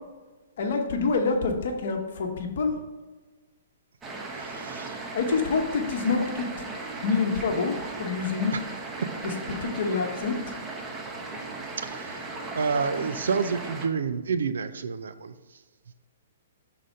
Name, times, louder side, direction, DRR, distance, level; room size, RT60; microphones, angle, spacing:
voice 1, 0.6-2.8 5.1-6.5 7.0-8.5 9.2-10.4, left 4 dB, 55° left, 3 dB, 1.0 m, -27 dB
sound 1, 4.0-13.9, right 3 dB, 15° right, 0.8 m, -37 dB
voice 2, 4.3-5.0 11.8-15.3, right 5 dB, 65° right, 11 dB, 0.4 m, -29 dB
6.1 x 4.0 x 5.2 m, 1.3 s
figure-of-eight pair, 115°, 0 cm